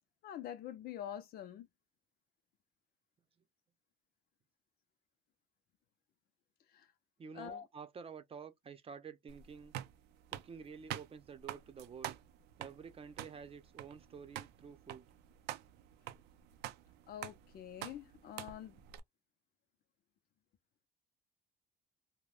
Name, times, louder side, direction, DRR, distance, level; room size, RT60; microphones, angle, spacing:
voice 1, 0.2-1.7 6.7-6.9 7.3-7.7 17.1-18.8, left 10 dB, 65° left, 0.6 m, -46 dB
voice 2, 7.2-9.7 10.3-12.2 12.6-15.1, right 6 dB, 35° right, 0.7 m, -50 dB
sound 1, 9.3-19.0, right 13 dB, 85° right, 0.5 m, -47 dB
2.5 x 2.2 x 3.3 m
cardioid pair, 110°, 17 cm